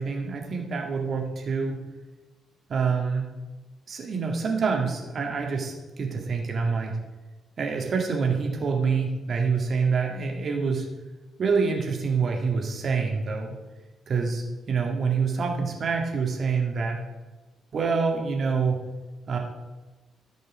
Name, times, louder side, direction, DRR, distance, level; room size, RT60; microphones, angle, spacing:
voice 1, 0.0-1.8 2.7-3.3 3.9-6.9 7.6-10.9 11.4-13.6 14.1-17.0 17.7-18.8 19.3-19.4, right 5 dB, 45° right, 1 dB, 2.0 m, -26 dB
14.0 x 5.4 x 5.1 m, 1.2 s
figure-of-eight pair, 40°, 0 cm